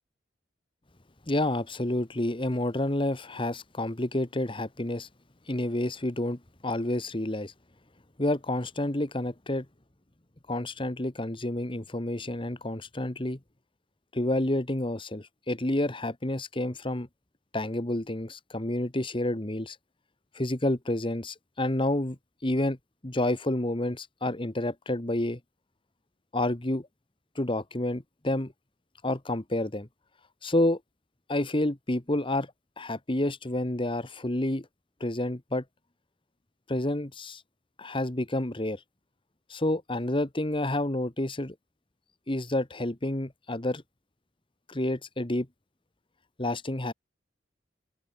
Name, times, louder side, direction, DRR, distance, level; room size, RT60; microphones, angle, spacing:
voice 1, 1.3-5.1 5.5-7.5 8.2-9.6 10.5-13.4 14.1-17.1 17.5-19.8 20.3-22.8 23.0-25.4 26.3-26.9 27.3-28.5 29.0-29.9 30.4-30.8 31.3-32.5 32.8-34.7 35.0-35.6 36.7-37.4 37.8-38.8 39.5-41.5 42.3-43.8 44.7-45.5 46.4-46.9, left 1 dB, 25° left, 1.5 m, -29 dB
open air
head